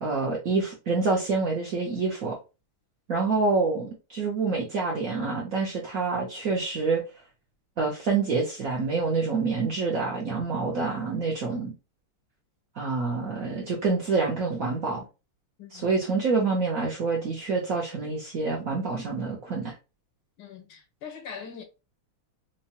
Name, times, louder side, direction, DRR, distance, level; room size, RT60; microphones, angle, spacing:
voice 1, 0.0-2.4 3.1-7.0 7.8-11.7 12.8-15.0 15.7-19.8, right 4 dB, 65° right, 0.8 m, -27 dB
voice 2, 15.6-15.9 20.4-21.6, left 6 dB, 85° left, 1.8 m, -42 dB
4.6 x 2.1 x 2.8 m
omnidirectional pair, 2.3 m